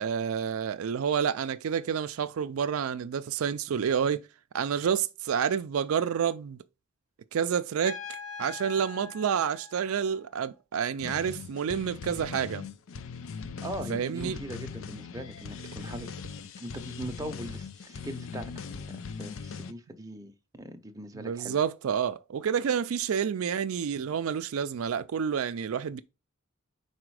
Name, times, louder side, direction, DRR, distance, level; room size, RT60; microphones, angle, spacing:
voice 1, 0.0-4.2 4.5-6.6 7.3-8.0 8.4-12.7 13.9-14.4 21.2-26.0, right 7 dB, 70° right, 0.4 m, -29 dB
Trumpet, 7.8-10.5, left 5 dB, 35° left, 1.5 m, -43 dB
sound 1, 11.0-19.7, left 5 dB, 65° left, 0.5 m, -40 dB
voice 2, 13.6-16.1 16.6-21.6, right 1 dB, 15° right, 0.7 m, -40 dB
4.9 x 4.2 x 4.7 m
head